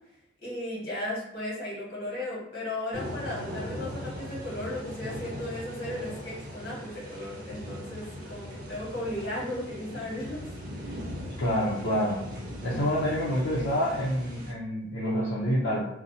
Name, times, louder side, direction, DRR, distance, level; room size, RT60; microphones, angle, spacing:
voice 1, 0.4-10.4 10.9-11.0 13.5-13.7, left 1 dB, 55° left, -6 dB, 1.2 m, -35 dB
sound 1, 2.9-14.5, equal, 50° right, 0.6 m, -39 dB
voice 2, 11.4-12.2 12.6-15.9, equal, 75° left, -7 dB, 0.5 m, -27 dB
2.6 x 2.0 x 2.7 m, 0.87 s
head